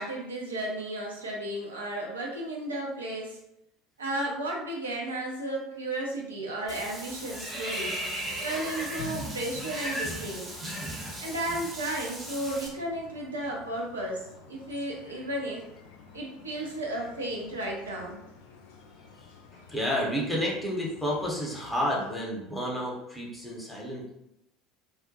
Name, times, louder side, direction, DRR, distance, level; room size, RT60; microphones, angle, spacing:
voice 1, 0.0-3.4 4.0-8.0 8.4-10.5 11.2-15.6 16.1-18.2, right 1 dB, 80° right, -2 dB, 0.4 m, -34 dB
Water / Bathtub (filling or washing), 6.7-12.7, right 1 dB, 25° right, 0.7 m, -36 dB
sound 1, 8.4-22.1, left 4 dB, 65° left, 0.3 m, -50 dB
voice 2, 19.7-24.1, equal, 10° left, -3 dB, 0.8 m, -30 dB
2.3 x 2.1 x 2.7 m, 0.82 s
figure-of-eight pair, 65°, 0 cm